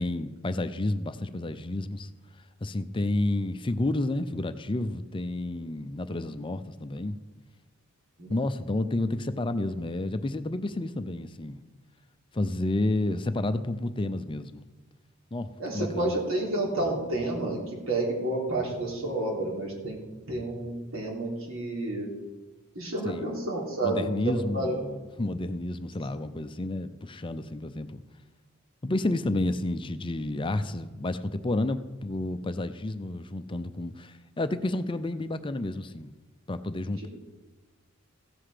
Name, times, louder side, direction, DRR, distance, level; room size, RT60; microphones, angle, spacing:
voice 1, 0.0-2.1 2.6-7.2 8.3-11.6 12.3-14.6 15.3-16.2 23.0-23.4 23.8-28.0 28.8-36.1 36.5-37.1, left 2 dB, 25° left, 11 dB, 0.5 m, -30 dB
voice 2, 15.6-20.0 20.3-22.1 22.8-24.8, right 2 dB, 85° right, -2 dB, 3.5 m, -30 dB
15.5 x 7.8 x 5.0 m, 1.2 s
head